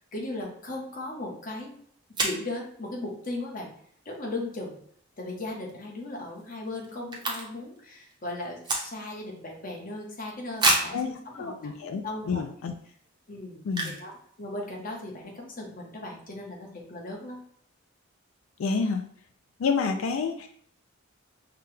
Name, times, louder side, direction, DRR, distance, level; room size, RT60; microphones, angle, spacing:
voice 1, 0.1-1.7 2.2-3.7 4.0-4.8 5.2-11.7 12.0-12.5 13.3-17.4 19.8-20.0, left 2 dB, 40° left, -1 dB, 1.0 m, -37 dB
sound 1, 2.1-2.5 5.4-5.7 6.0-6.1 6.3-7.8 8.0-9.3 9.7-9.8 10.6-11.0 11.7-11.8 12.3-12.5 13.7-14.1 14.4-14.5 14.7-15.0, right 2 dB, 20° right, 0.7 m, -28 dB
voice 2, 10.9-12.7 13.6-14.0 18.6-19.1 19.6-20.6, left 5 dB, 75° left, 6 dB, 0.4 m, -29 dB
5.7 x 2.2 x 3.3 m, 0.63 s
head